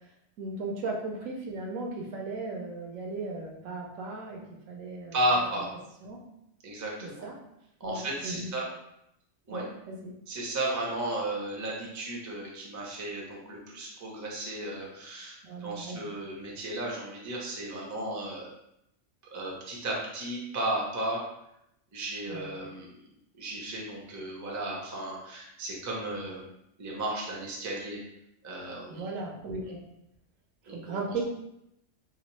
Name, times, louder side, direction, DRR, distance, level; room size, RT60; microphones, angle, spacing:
voice 1, 0.4-4.4 4.7-5.1 6.0-6.2 7.0-7.4 7.8-8.5 9.5-10.1 15.4-16.0 22.3-22.5 28.9-29.8 30.7-31.2, right 3 dB, 75° right, 0 dB, 1.1 m, -36 dB
voice 2, 5.1-5.7 6.6-7.3 7.8-8.6 9.5-9.6 10.3-18.5 19.2-21.2 21.9-23.0 23.4-26.4 26.8-28.0 28.4-29.1 30.7-31.2, right 1 dB, 25° right, -3 dB, 0.4 m, -34 dB
3.0 x 2.8 x 3.1 m, 0.81 s
omnidirectional pair, 1.4 m